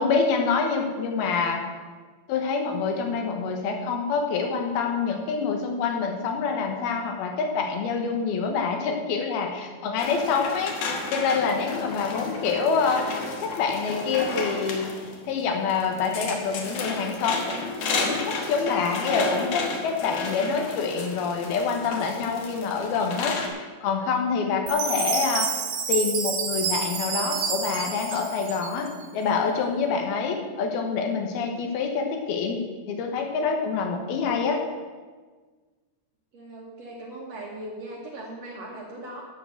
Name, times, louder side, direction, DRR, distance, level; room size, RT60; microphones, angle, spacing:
voice 1, 0.0-1.6 2.3-14.9 15.3-25.5 25.9-28.9 29.1-32.6 32.9-34.6, left 5 dB, 85° left, 3 dB, 3.2 m, -26 dB
sound 1, 10.0-23.5, left 3 dB, 60° left, 1.9 m, -32 dB
Chime, 24.7-29.0, right 6 dB, 80° right, 3.3 m, -29 dB
voice 2, 24.8-25.2 36.3-39.2, right 1 dB, 55° right, -2 dB, 2.1 m, -39 dB
12.0 x 5.7 x 7.7 m, 1.4 s
omnidirectional pair, 4.3 m